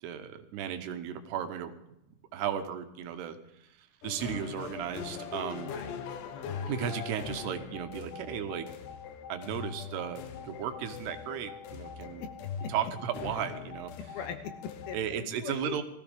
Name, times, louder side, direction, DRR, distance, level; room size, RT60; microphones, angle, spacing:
voice 1, 0.0-1.7 2.3-3.4 3.8-5.7 6.7-8.7 9.3-12.3 12.7-13.9 14.9-15.8, right 9 dB, 80° right, 8 dB, 3.1 m, -35 dB
sound 1, 4.0-15.0, left 7 dB, 85° left, 3.3 m, -41 dB
voice 2, 5.5-5.9 6.2-6.6 12.2-12.3 12.6-12.7 14.1-15.8, left 7 dB, 70° left, 6 dB, 2.8 m, -41 dB
20.0 x 14.5 x 3.6 m, 0.84 s
omnidirectional pair, 4.8 m